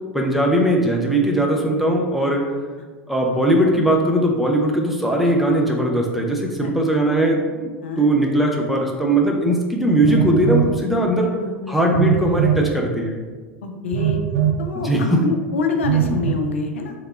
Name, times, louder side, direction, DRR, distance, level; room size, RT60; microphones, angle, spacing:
voice 1, 0.1-2.5 3.1-7.7 8.0-11.3 11.7-13.2 14.7-15.2, right 1 dB, ahead, -1 dB, 0.6 m, -19 dB
Telephone, 10.0-10.7 11.9-12.7 13.9-14.6 15.8-16.3, right 11 dB, 55° right, 0.4 m, -20 dB
voice 2, 11.2-11.8 13.6-14.2 14.6-16.9, left 4 dB, 70° left, 4 dB, 0.4 m, -26 dB
3.3 x 2.8 x 3.8 m, 1.4 s
figure-of-eight pair, 80°, 7 cm